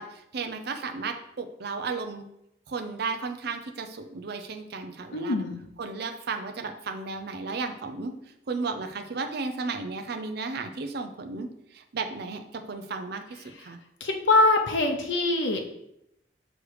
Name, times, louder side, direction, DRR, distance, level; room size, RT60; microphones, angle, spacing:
voice 1, 0.0-2.3 2.7-5.4 5.8-8.1 8.5-13.8, right 4 dB, 60° right, 6 dB, 0.5 m, -34 dB
voice 2, 5.1-5.6 14.0-15.6, left 2 dB, 90° left, 3 dB, 0.7 m, -23 dB
6.2 x 3.3 x 4.8 m, 0.79 s
head